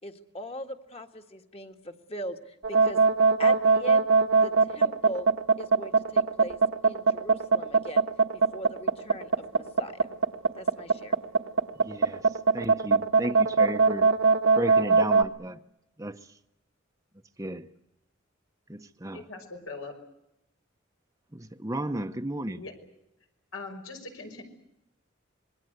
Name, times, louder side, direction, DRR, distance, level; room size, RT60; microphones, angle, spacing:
voice 1, 0.0-3.0 3.4-4.0 4.4-5.3 5.6-8.1 8.3-10.1 10.5-11.2, equal, 30° left, 1.9 m, -40 dB
sound 1, 2.6-15.2, right 4 dB, 75° right, 1.5 m, -21 dB
voice 2, 11.8-12.2 12.5-14.1 14.6-15.6 16.0-16.2 17.4-17.7 18.7-19.2 21.3-22.6, right 1 dB, 15° right, 0.9 m, -33 dB
voice 3, 19.1-20.0 22.6-22.7 23.5-24.4, left 3 dB, 80° left, 5.9 m, -41 dB
26.5 x 22.0 x 8.1 m
head